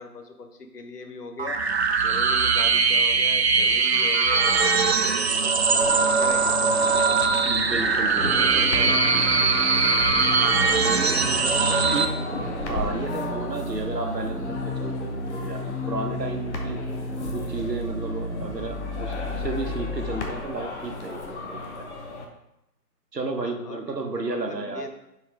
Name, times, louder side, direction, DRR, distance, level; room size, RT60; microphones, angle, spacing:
voice 1, 0.0-1.6 2.0-7.0 8.0-8.1 8.7-9.0 11.5-12.2 13.0-13.3 23.4-24.9, left 3 dB, 70° left, 4 dB, 1.2 m, -40 dB
sound 1, 1.4-12.0, right 4 dB, 45° right, 0.5 m, -21 dB
sound 2, 5.7-22.3, left 3 dB, 45° left, 1.1 m, -36 dB
voice 2, 7.4-9.5 10.8-11.5 11.9-12.1 12.7-16.8 17.3-21.8 23.1-24.9, right 3 dB, 90° right, 4 dB, 1.3 m, -33 dB
sound 3, 8.2-20.2, left 1 dB, 15° right, 2.1 m, -32 dB
9.1 x 4.8 x 3.4 m, 0.85 s
figure-of-eight pair, 145°, 48 cm